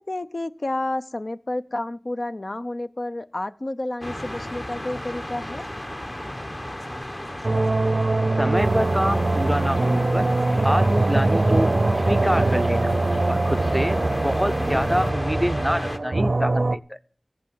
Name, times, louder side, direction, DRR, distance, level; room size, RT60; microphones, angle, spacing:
voice 1, 0.1-5.6, left 1 dB, 60° left, 10 dB, 0.7 m, -30 dB
sound 1, 4.0-16.0, left 1 dB, 35° left, 1.3 m, -33 dB
sound 2, 7.4-16.8, right 2 dB, 70° right, 0.6 m, -22 dB
voice 2, 8.4-10.3 10.6-11.7 12.1-12.9 13.3-17.0, equal, ahead, 13 dB, 0.6 m, -26 dB
sound 3, 8.5-15.1, left 2 dB, 80° left, 1.1 m, -35 dB
15.5 x 8.9 x 7.7 m, 0.44 s
wide cardioid pair, 55°, 0 cm